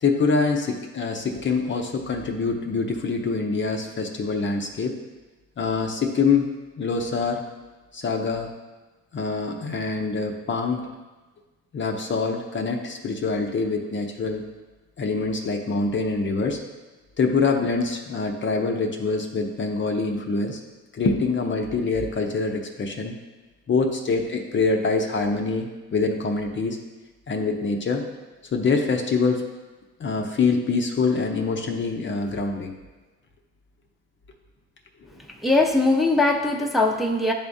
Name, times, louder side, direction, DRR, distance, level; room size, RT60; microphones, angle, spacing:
voice 1, 0.0-5.0 5.6-6.5 6.8-7.4 7.9-8.5 9.1-10.9 11.7-14.4 15.0-16.6 17.2-20.6 20.9-23.2 23.7-26.8 27.3-28.0 28.5-29.4 30.0-32.7, left 4 dB, 40° left, 2 dB, 0.6 m, -25 dB
voice 2, 35.4-37.3, left 2 dB, ahead, 0 dB, 0.7 m, -20 dB
10.0 x 3.5 x 2.6 m, 1.2 s
cardioid pair, 90°, 30 cm